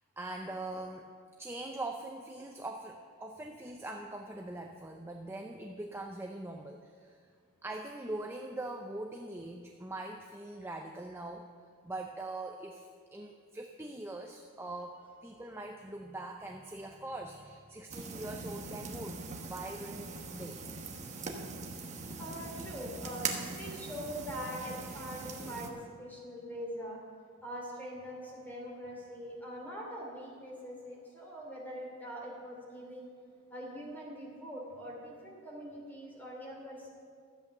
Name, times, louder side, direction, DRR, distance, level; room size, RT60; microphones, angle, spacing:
voice 1, 0.2-1.1 1.4-7.2 7.6-11.5 11.8-19.2 19.4-20.6, right 2 dB, 10° right, 2 dB, 0.5 m, -42 dB
sound 1, 17.9-25.7, right 4 dB, 30° right, 1.1 m, -41 dB
voice 2, 22.2-27.0 27.4-33.1 33.5-36.9, equal, 10° left, -3 dB, 3.0 m, -43 dB
13.0 x 8.4 x 6.6 m, 2.3 s
head